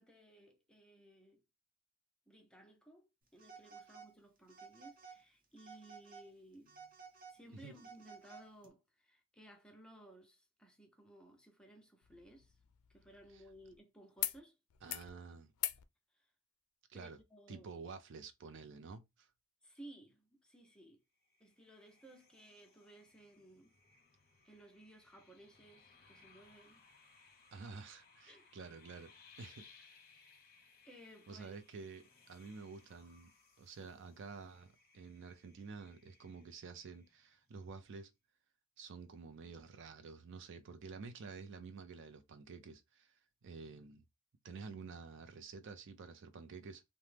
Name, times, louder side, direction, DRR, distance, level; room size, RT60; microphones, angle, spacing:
voice 1, 0.0-1.4 2.3-6.9 7.3-12.5 12.9-14.6 16.1-16.3 16.9-17.7 19.6-21.0 21.4-23.7 24.4-26.8 28.3-28.5 30.8-31.6, right 1 dB, 5° left, 0.6 m, -59 dB
Telephone, 3.4-4.1 4.5-5.2 5.6-6.3 6.7-8.7, right 5 dB, 40° right, 0.9 m, -55 dB
sound 1, 12.0-13.8 14.2-14.4 14.7-15.1 15.5-15.9 17.2-17.3, left 14 dB, 90° left, 0.3 m, -43 dB
voice 2, 14.8-15.5 16.9-17.2 17.5-19.3 27.5-29.1 29.4-30.0 31.3-33.3 33.6-38.1 38.8-43.1 43.4-44.0 44.4-46.8, right 4 dB, 60° right, 0.4 m, -50 dB
sound 2, 21.2-37.5, left 5 dB, 45° left, 0.8 m, -65 dB
2.8 x 2.0 x 3.3 m
head